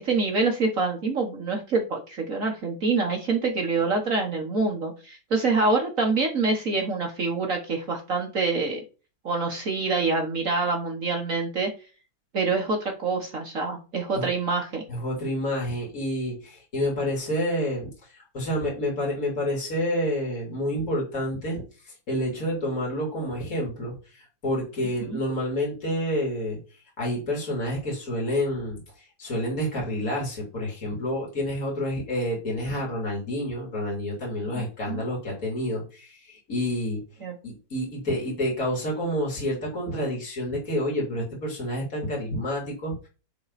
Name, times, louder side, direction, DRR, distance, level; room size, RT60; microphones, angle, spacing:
voice 1, 0.0-8.8 9.2-11.7 12.3-14.8 25.0-25.2 34.5-35.0 37.2-37.4, right 3 dB, 50° right, 2 dB, 1.6 m, -26 dB
voice 2, 14.9-26.6 27.0-37.0 37.4-43.0, equal, 45° left, -3 dB, 3.6 m, -29 dB
10.0 x 3.9 x 4.1 m, 0.34 s
omnidirectional pair, 2.0 m